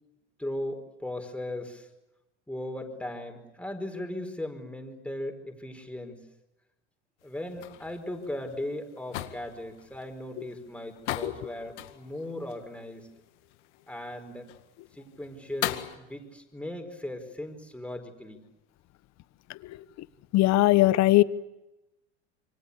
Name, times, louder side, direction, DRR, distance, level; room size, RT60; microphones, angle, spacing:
voice 1, 0.4-1.9 2.5-6.2 7.2-13.1 13.9-14.5 14.9-18.4, left 1 dB, 5° left, 5 dB, 4.8 m, -37 dB
sound 1, 7.2-16.0, left 15 dB, 75° left, 2.0 m, -40 dB
voice 2, 20.3-21.2, left 17 dB, 50° left, 16 dB, 1.2 m, -19 dB
28.0 x 23.5 x 8.5 m, 0.95 s
hypercardioid pair, 95°, 35 cm